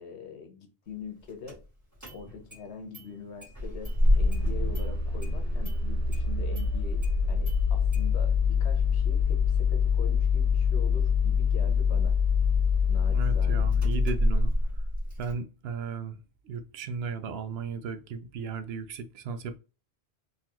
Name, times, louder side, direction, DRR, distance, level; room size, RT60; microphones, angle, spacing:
voice 1, 0.0-1.6 2.1-12.2 12.9-13.7, left 5 dB, 90° left, 1.2 m, -43 dB
Engine starting, 1.5-1.6 2.0-2.6 2.9-3.0 3.4-15.3, left 5 dB, 15° right, 1.9 m, -25 dB
voice 2, 13.1-14.5 15.2-19.6, right 5 dB, 70° right, 0.8 m, -35 dB
3.9 x 2.8 x 2.9 m
omnidirectional pair, 1.1 m